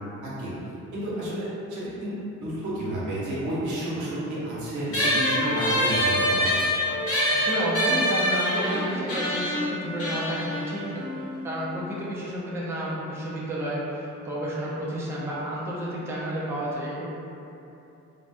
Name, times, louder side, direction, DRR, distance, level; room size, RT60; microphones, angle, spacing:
voice 1, 0.2-0.6 0.9-2.1 2.4-6.7, right 1 dB, 75° right, -7 dB, 0.8 m, -31 dB
sound 1, 4.9-11.7, equal, 50° left, 1.0 m, -25 dB
voice 2, 7.3-11.0 11.4-17.1, equal, 10° right, -6 dB, 0.4 m, -31 dB
2.6 x 2.1 x 2.4 m, 2.8 s
cardioid pair, 90°, 30 cm